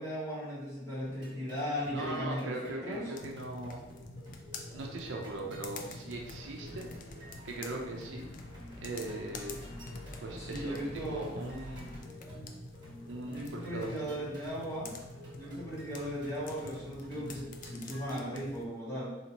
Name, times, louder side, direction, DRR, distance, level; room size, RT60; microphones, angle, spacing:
voice 1, 0.0-3.1 10.4-11.3 13.3-15.0 15.3-19.2, equal, 15° left, -8 dB, 1.3 m, -37 dB
sound 1, 1.0-18.2, equal, 25° right, 1.4 m, -51 dB
voice 2, 1.9-3.8 4.7-6.9 7.4-8.3 8.8-9.6 10.2-11.9 13.1-14.3, right 2 dB, 70° right, 1 dB, 0.6 m, -40 dB
sound 2, 3.2-18.7, left 3 dB, 45° left, 0.4 m, -47 dB
sound 3, 6.1-12.0, equal, 85° left, 1.2 m, -51 dB
4.2 x 2.7 x 2.9 m, 1.0 s
head